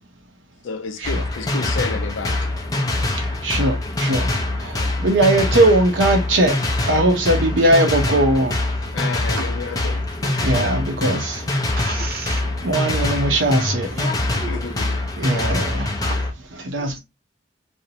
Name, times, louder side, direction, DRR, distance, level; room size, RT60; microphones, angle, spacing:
voice 1, 0.6-2.6 8.9-10.1 10.4-10.7 14.3-15.1, left 4 dB, 85° left, 0.5 m, -31 dB
sound 1, 1.0-16.3, left 2 dB, 20° left, 0.4 m, -24 dB
voice 2, 3.2-6.6 6.8-8.6 10.2-11.5 12.6-14.0 15.2-16.2 16.5-17.0, right 1 dB, 85° right, 0.7 m, -20 dB
voice 3, 11.8-12.4 13.9-14.5 15.7-16.2 16.8-17.0, right 1 dB, 50° right, 0.7 m, -33 dB
2.6 x 2.0 x 2.7 m
head